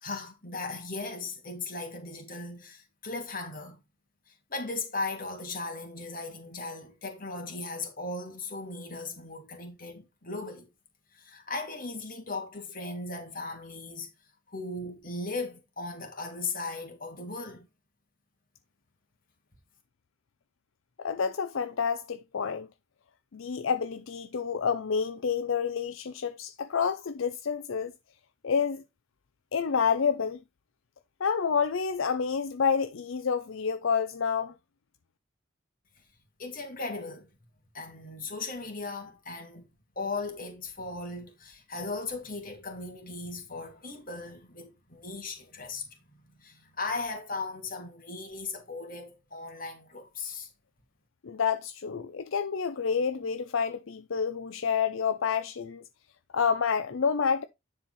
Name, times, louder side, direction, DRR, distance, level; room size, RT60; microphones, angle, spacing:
voice 1, 0.0-3.8 4.3-10.7 11.1-14.1 14.5-17.7 36.4-37.3 37.7-39.7 40.0-45.9 46.4-50.5, left 3 dB, 40° left, 2.3 m, -37 dB
voice 2, 21.0-22.7 23.3-27.9 28.4-28.8 29.5-30.4 31.2-34.5 51.2-55.8 56.3-57.4, left 6 dB, 70° left, 0.5 m, -28 dB
9.9 x 4.4 x 4.0 m
head